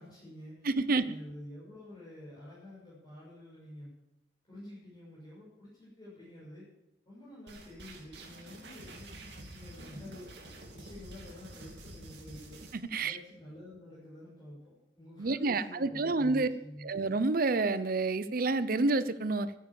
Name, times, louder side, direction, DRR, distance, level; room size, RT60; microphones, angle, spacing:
voice 1, 0.0-3.9 4.4-6.7 7.0-10.3 10.7-12.6 13.0-16.9, left 1 dB, 25° left, -8 dB, 6.4 m, -49 dB
voice 2, 0.7-1.0 12.9-13.1 15.2-16.5 16.8-19.5, right 3 dB, 55° right, 14 dB, 0.7 m, -28 dB
sound 1, 7.5-12.8, right 2 dB, 75° right, 2.7 m, -48 dB
14.0 x 9.2 x 7.1 m, 0.88 s
head